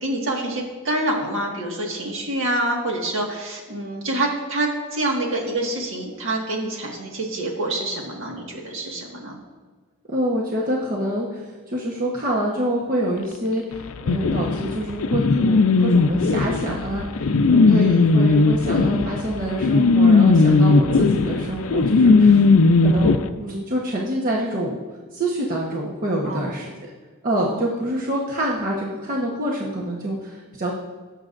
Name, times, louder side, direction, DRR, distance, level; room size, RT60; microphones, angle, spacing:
voice 1, 0.0-9.4 17.6-18.0 26.2-26.5 27.5-27.6, right 1 dB, 65° right, 0 dB, 1.7 m, -26 dB
voice 2, 10.1-22.4 22.8-24.8 25.1-26.7 27.2-30.8, right 1 dB, 40° right, -3 dB, 1.1 m, -26 dB
sound 1, 14.1-23.2, left 3 dB, 70° left, 0.5 m, -17 dB
18.5 x 6.6 x 2.6 m, 1.4 s
head